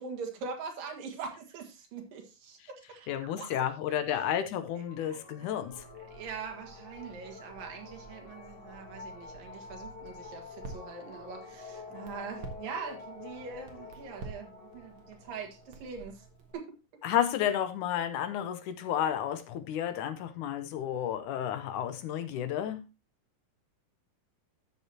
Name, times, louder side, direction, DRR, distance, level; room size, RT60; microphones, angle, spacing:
voice 1, 0.0-3.5 4.8-5.5 6.0-16.3 16.5-16.7, right 5 dB, 85° right, 3.5 m, -43 dB
voice 2, 3.1-5.7 17.0-22.8, left 10 dB, 75° left, 2.2 m, -31 dB
sound 1, 4.8-16.6, left 4 dB, 30° left, 2.9 m, -48 dB
Crackle, 5.7-16.5, right 4 dB, 50° right, 2.2 m, -51 dB
13.0 x 7.1 x 2.9 m
omnidirectional pair, 3.9 m